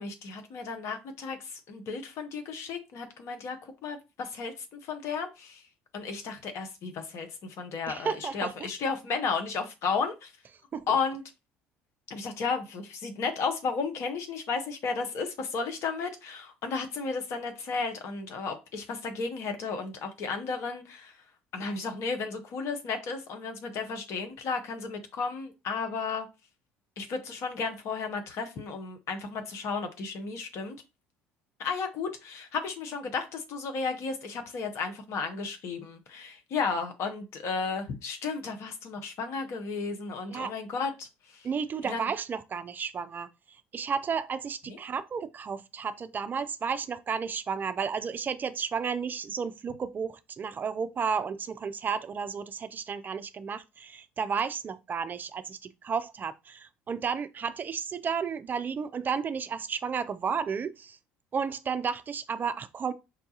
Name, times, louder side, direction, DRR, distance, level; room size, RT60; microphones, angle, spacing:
voice 1, 0.0-5.6 5.9-10.3 10.9-11.2 12.1-21.2 21.5-26.3 27.0-30.8 31.6-41.5 41.8-42.1 44.7-44.8, left 5 dB, 55° left, 0.8 m, -33 dB
voice 2, 7.9-8.7 10.7-10.9 40.3-40.5 41.4-43.3 43.7-61.0 61.3-62.9, right 6 dB, 35° right, 0.3 m, -32 dB
5.2 x 2.3 x 2.8 m
hypercardioid pair, 65°, 6 cm